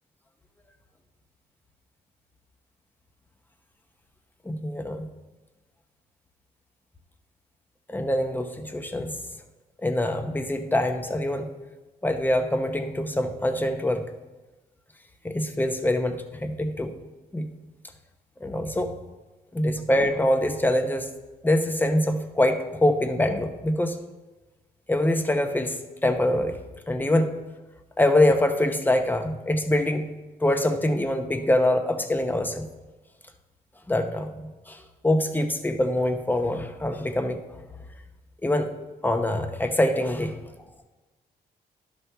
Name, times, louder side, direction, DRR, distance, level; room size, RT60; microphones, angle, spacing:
voice 1, 4.4-5.1 7.9-9.2 9.8-11.5 12.0-14.0 15.2-17.0 17.3-17.5 18.4-18.9 19.5-21.1 21.4-24.0 24.9-26.6 26.9-27.4 28.0-30.1 30.4-32.7 33.9-37.6 38.4-38.7 39.0-40.4, left 1 dB, 10° left, 7 dB, 0.9 m, -24 dB
11.0 x 6.2 x 3.4 m, 1.2 s
cardioid pair, 75°, 17 cm